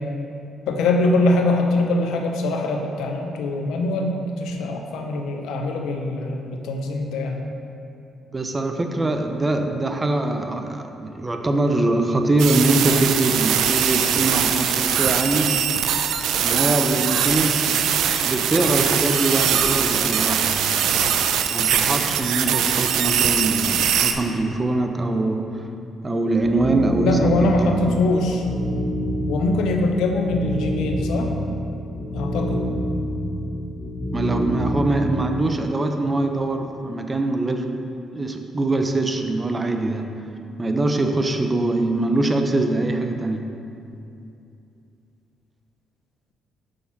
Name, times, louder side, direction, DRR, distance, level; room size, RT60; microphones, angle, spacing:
voice 1, 0.7-7.4 27.0-28.4 29.3-31.3 32.1-32.6, left 2 dB, 85° left, 3 dB, 0.7 m, -23 dB
voice 2, 8.3-15.6 16.4-17.9 18.2-21.0 21.5-25.7 26.0-27.8 34.1-37.9 38.1-40.1 40.6-43.5, right 2 dB, 25° right, 5 dB, 0.6 m, -23 dB
sound 1, 12.4-24.1, right 8 dB, 80° right, 0.4 m, -21 dB
sound 2, 26.4-35.6, equal, 10° left, 1.5 m, -27 dB
6.4 x 5.6 x 4.4 m, 2.7 s
cardioid pair, 90°, 0 cm